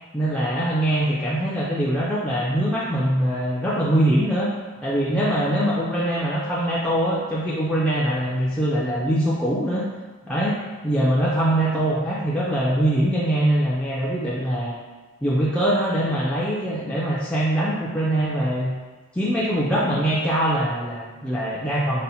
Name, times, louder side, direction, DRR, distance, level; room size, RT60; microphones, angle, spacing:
voice 1, 0.1-4.5 4.8-9.9 10.3-10.6 10.8-14.7 15.2-18.7 19.1-22.0, right 1 dB, 5° left, -8 dB, 0.3 m, -23 dB
4.1 x 2.1 x 4.0 m, 1.3 s
head